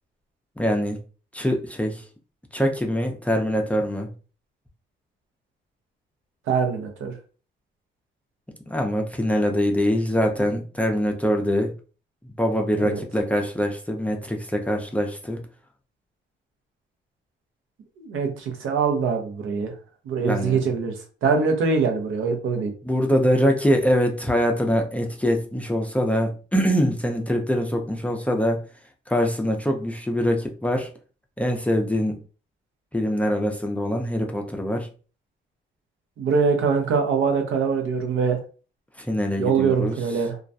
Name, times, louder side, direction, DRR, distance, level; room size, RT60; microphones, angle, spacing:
voice 1, 0.6-1.0 1.3-2.0 2.5-4.1 8.7-11.7 12.4-15.4 20.2-20.6 22.8-28.6 29.1-30.9 31.4-32.2 32.9-34.9 39.0-40.0, equal, 5° left, 2 dB, 0.4 m, -23 dB
voice 2, 6.5-7.1 12.8-13.0 18.0-19.7 20.1-20.9 21.2-22.7 36.2-38.4 39.4-40.4, right 5 dB, 80° right, 4 dB, 0.7 m, -23 dB
2.3 x 2.1 x 2.6 m, 0.36 s
cardioid pair, 90°, 20 cm